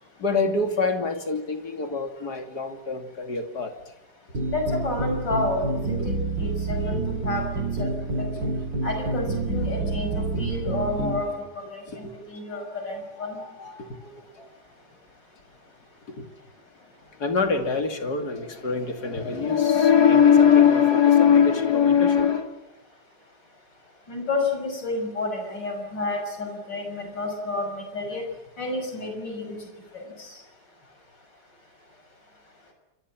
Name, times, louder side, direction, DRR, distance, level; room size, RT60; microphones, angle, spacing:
voice 1, 0.2-3.7 10.4-10.5 12.0-12.7 13.3-14.5 16.1-16.3 17.2-22.5, left 7 dB, 65° left, 3.2 m, -22 dB
sound 1, 4.3-11.2, right 3 dB, 90° right, 5.0 m, -28 dB
voice 2, 4.5-7.5 7.8-7.9 8.2-8.5 8.8-11.3 11.7-13.4 19.3-19.4 24.1-28.2 28.6-29.6 29.9-30.4, left 2 dB, 90° left, 6.5 m, -30 dB
27.0 x 25.0 x 7.4 m
omnidirectional pair, 1.9 m